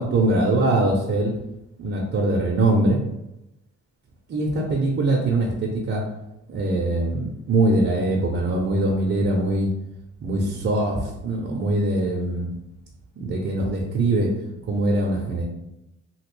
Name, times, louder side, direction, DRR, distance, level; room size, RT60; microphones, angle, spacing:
voice 1, 0.0-1.3 1.8-3.0 4.3-6.0 6.5-9.7 10.2-12.5 13.1-14.3 14.7-15.4, right 2 dB, 40° right, -1 dB, 0.6 m, -22 dB
2.9 x 2.7 x 3.1 m, 0.88 s
cardioid pair, 90°, 30 cm